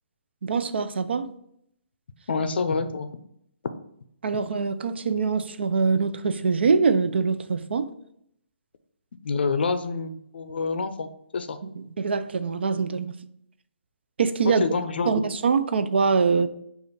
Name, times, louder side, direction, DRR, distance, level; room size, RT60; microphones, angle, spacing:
voice 1, 0.4-1.3 4.2-7.9 11.6-13.1 14.2-14.6 15.1-16.5, right 5 dB, 70° right, 0.4 m, -24 dB
voice 2, 2.3-3.1 9.2-11.6 14.4-15.2, left 4 dB, 60° left, 0.5 m, -27 dB
5.0 x 2.4 x 3.9 m
hypercardioid pair, 170°, 6 cm